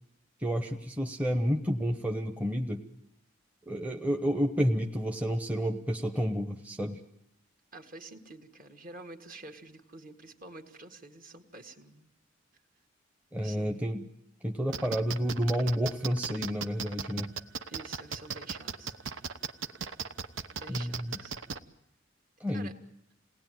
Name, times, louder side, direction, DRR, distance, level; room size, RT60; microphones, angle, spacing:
voice 1, 0.4-2.8 3.7-7.0 13.3-14.1 14.4-17.3 20.7-21.2 22.4-22.7, equal, 10° right, 4 dB, 0.9 m, -30 dB
voice 2, 7.7-12.1 13.4-13.9 17.7-19.2 20.5-21.4 22.5-22.7, right 2 dB, 45° right, 5 dB, 2.0 m, -48 dB
sound 1, 14.7-21.6, right 6 dB, 80° right, 0.9 m, -36 dB
28.0 x 19.0 x 9.2 m, 0.85 s
head